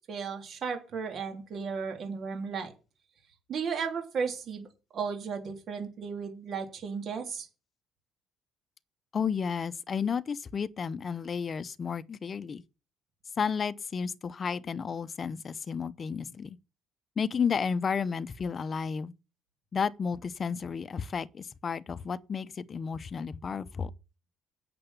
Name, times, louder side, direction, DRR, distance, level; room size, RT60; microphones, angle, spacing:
voice 1, 0.1-2.7 3.5-4.7 4.9-7.5, right 5 dB, 50° right, 3.2 m, -34 dB
voice 2, 9.1-12.6 13.4-16.6 17.2-19.1 19.7-23.9, left 6 dB, 35° left, 0.7 m, -32 dB
8.4 x 6.9 x 7.1 m
cardioid pair, 110°, 0 cm